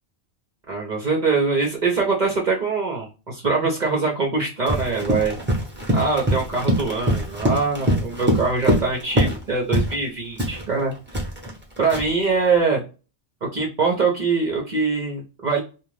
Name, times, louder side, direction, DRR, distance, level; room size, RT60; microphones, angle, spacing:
voice 1, 0.7-5.4 5.9-10.9 11.8-12.8 13.5-15.6, right 4 dB, 45° right, -1 dB, 0.8 m, -23 dB
Run, 4.7-9.4 9.7-10.0 10.4-12.2, right 1 dB, 10° right, 0.8 m, -23 dB
2.4 x 2.4 x 3.1 m, 0.32 s
omnidirectional pair, 1.1 m